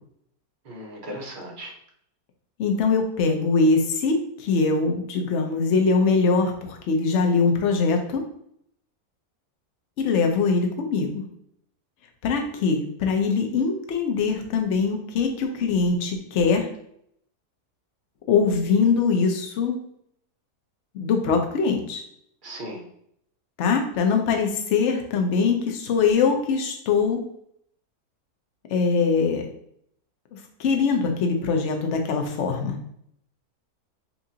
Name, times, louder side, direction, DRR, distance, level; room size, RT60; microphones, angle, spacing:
voice 1, 0.6-1.7 22.4-22.8, equal, 40° right, -1 dB, 0.8 m, -37 dB
voice 2, 2.6-8.2 10.0-11.2 12.2-16.7 18.3-19.8 20.9-22.0 23.6-27.2 28.7-29.4 30.6-32.8, left 4 dB, 60° left, 4 dB, 0.9 m, -22 dB
5.5 x 2.5 x 2.8 m, 0.70 s
omnidirectional pair, 1.7 m